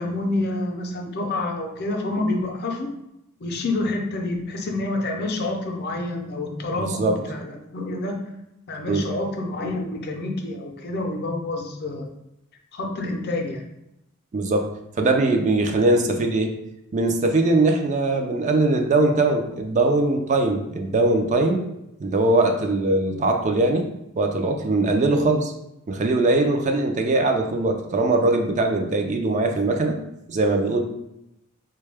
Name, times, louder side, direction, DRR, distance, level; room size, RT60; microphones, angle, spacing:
voice 1, 0.0-2.9 3.4-8.2 8.7-12.1 12.7-13.6, left 2 dB, 50° left, 2 dB, 0.5 m, -28 dB
voice 2, 6.7-7.2 8.9-9.0 14.3-14.7 15.0-16.5 16.9-21.6 22.0-23.9 24.2-25.5 25.9-30.0 30.3-30.8, right 2 dB, 35° right, 4 dB, 0.4 m, -21 dB
3.6 x 2.2 x 3.3 m, 0.84 s
head